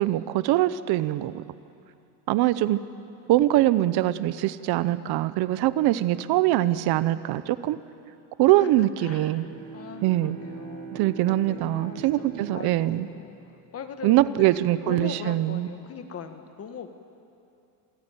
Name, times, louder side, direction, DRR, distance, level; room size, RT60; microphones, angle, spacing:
voice 1, 0.0-1.4 2.3-2.8 3.3-7.8 8.4-9.4 10.0-10.4 10.9-13.1 14.0-15.7, right 15 dB, 50° right, 15 dB, 0.8 m, -23 dB
voice 2, 9.0-10.9 11.3-14.6 14.8-16.9, left 7 dB, 30° left, 8 dB, 1.6 m, -40 dB
Bowed string instrument, 9.1-14.2, right 6 dB, 70° right, 4.9 m, -43 dB
27.5 x 16.5 x 9.0 m, 2.6 s
cardioid pair, 145°, 50 cm